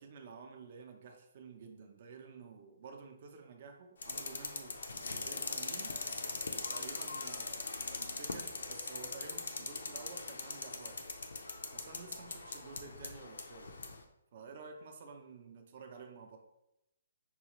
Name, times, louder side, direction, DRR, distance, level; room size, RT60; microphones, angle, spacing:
voice 1, 0.0-4.8 5.1-5.9 6.5-11.1 11.7-13.7 14.3-16.4, right 5 dB, 45° right, 4 dB, 0.6 m, -51 dB
sound 1, 4.0-14.0, left 3 dB, 85° left, 0.5 m, -41 dB
5.4 x 2.4 x 3.0 m, 0.87 s
hypercardioid pair, 165°, 0 cm